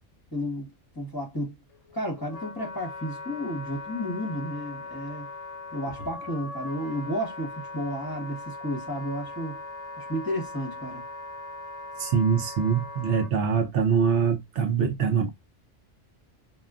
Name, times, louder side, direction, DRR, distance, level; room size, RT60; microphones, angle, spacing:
voice 1, 0.3-1.5 1.9-5.3 5.7-9.6 10.0-11.0, equal, 20° left, 0.8 m, -32 dB
Wind instrument woodwind instrument, 1.7-13.3, left 2 dB, 65° left, 0.4 m, -40 dB
voice 2, 12.0-15.3, right 6 dB, 70° right, 0.9 m, -24 dB
2.3 x 2.2 x 3.5 m
omnidirectional pair, 1.2 m